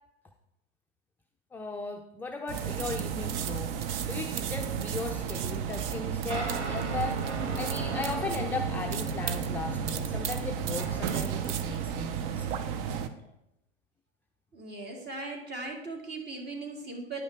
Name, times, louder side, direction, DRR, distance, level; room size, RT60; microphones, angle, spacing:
voice 1, 1.5-3.7 4.1-12.7, left 3 dB, 5° left, 2 dB, 0.4 m, -37 dB
sound 1, 2.5-13.1, right 8 dB, 55° right, 0.8 m, -33 dB
sound 2, 6.3-11.5, right 1 dB, 90° right, 1.4 m, -38 dB
voice 2, 14.5-17.2, right 3 dB, 30° right, 2 dB, 2.2 m, -38 dB
9.8 x 5.6 x 4.5 m, 0.86 s
hypercardioid pair, 110°, 34 cm